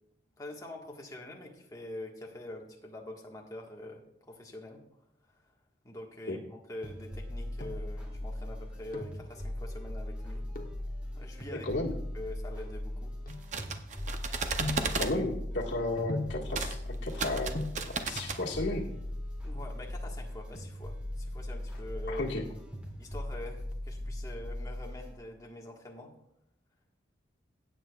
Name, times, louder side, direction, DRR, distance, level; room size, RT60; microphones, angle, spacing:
voice 1, 0.4-4.8 5.8-10.4 11.1-11.7 12.1-13.1 19.4-22.2 23.0-26.1, left 1 dB, 20° left, 0 dB, 1.5 m, -45 dB
sound 1, 6.8-25.1, left 1 dB, 5° right, 2.4 m, -39 dB
sound 2, 7.4-8.0 8.7-9.3 10.5-10.9 11.6-14.0 14.6-15.0 16.1-16.5 17.2-17.3 17.5-17.9 19.0-19.6 19.9-20.0 20.2-20.3 20.7-21.1 21.4-22.4 22.9-23.3 23.7-24.8 25.1-25.2, left 2 dB, 50° left, 1.0 m, -41 dB
voice 2, 11.6-11.9 14.9-18.9 22.1-22.4, left 2 dB, 70° left, 0 dB, 1.7 m, -33 dB
sound 3, 13.3-15.2 16.5-16.8 17.1-18.4, right 4 dB, 40° right, 0.6 m, -34 dB
16.5 x 8.2 x 2.4 m, 0.79 s
head